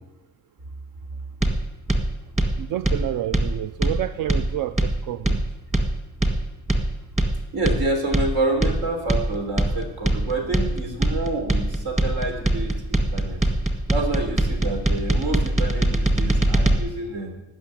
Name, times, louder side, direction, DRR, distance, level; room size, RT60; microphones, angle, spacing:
sound 1, 1.4-16.8, right 1 dB, 20° right, 1.7 m, -22 dB
voice 1, 2.6-5.4, right 12 dB, 65° right, 13 dB, 0.5 m, -29 dB
voice 2, 7.5-13.4 13.9-17.4, right 2 dB, 85° right, 3 dB, 3.7 m, -28 dB
18.0 x 6.3 x 9.8 m, 0.97 s
cardioid pair, 145°, 35 cm